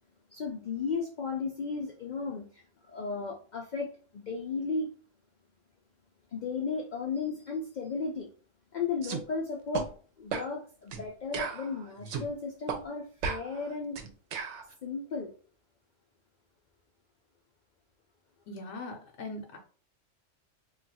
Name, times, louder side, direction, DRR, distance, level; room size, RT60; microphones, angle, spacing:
voice 1, 0.3-4.9 6.3-8.3 8.7-9.9 10.2-14.0 14.8-15.3, left 4 dB, 90° left, 1 dB, 0.4 m, -35 dB
sound 1, 9.0-9.2 9.7-9.9 10.3-10.5 10.9-11.0 11.3-12.3 12.7-12.8 13.2-14.6, right 6 dB, 70° right, 0.8 m, -35 dB
voice 2, 18.5-19.6, left 2 dB, 70° left, 3 dB, 0.9 m, -40 dB
2.3 x 2.3 x 4.0 m, 0.40 s
omnidirectional pair, 1.3 m